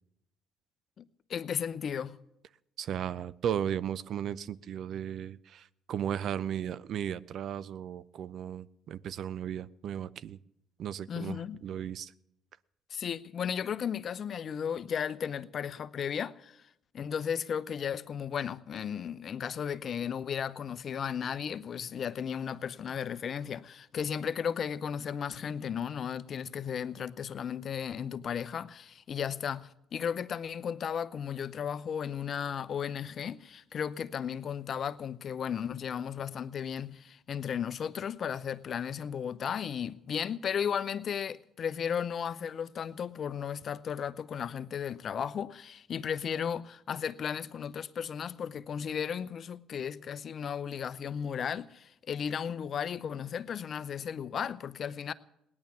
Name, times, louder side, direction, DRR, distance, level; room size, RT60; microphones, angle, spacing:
voice 1, 1.0-2.2 11.1-11.6 12.9-16.6 16.9-55.1, left 8 dB, 55° left, 0.7 m, -35 dB
voice 2, 2.8-10.4 10.8-12.1, right 9 dB, 60° right, 0.6 m, -35 dB
18.0 x 10.5 x 7.1 m
supercardioid pair, 70°, 0 cm